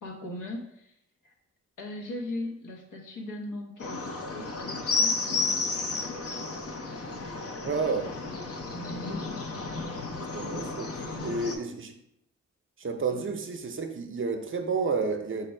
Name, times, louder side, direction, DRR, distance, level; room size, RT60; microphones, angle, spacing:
voice 1, 0.0-0.9 1.2-1.3 1.8-6.1 8.7-9.2 10.9-11.4 13.1-13.3, left 1 dB, 90° left, 1 dB, 1.0 m, -39 dB
sound 1, 3.8-11.6, left 3 dB, 50° left, 0.6 m, -32 dB
voice 2, 7.6-8.1 10.3-10.9 11.2-11.9 12.8-15.5, right 4 dB, 45° right, 5 dB, 0.6 m, -30 dB
5.2 x 2.2 x 4.3 m, 0.78 s
wide cardioid pair, 100°, 30 cm